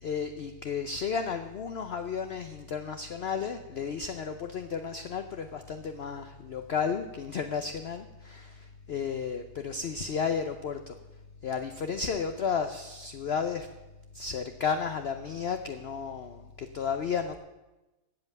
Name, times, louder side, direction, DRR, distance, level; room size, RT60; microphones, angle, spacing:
voice 1, 0.0-11.0 11.4-13.7 14.1-17.3, left 6 dB, 55° left, 7 dB, 0.8 m, -33 dB
16.0 x 5.6 x 9.1 m, 1.0 s
omnidirectional pair, 1.6 m